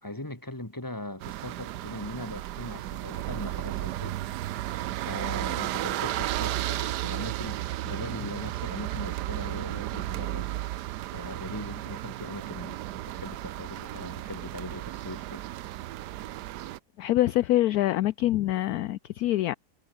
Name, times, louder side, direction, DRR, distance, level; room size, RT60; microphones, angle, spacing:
voice 1, 0.0-10.5 11.1-15.5, left 1 dB, 10° left, 2.8 m, -40 dB
sound 1, 1.2-16.8, right 14 dB, 75° right, 1.2 m, -34 dB
voice 2, 17.0-19.5, left 14 dB, 70° left, 1.0 m, -25 dB
omnidirectional pair, 1.8 m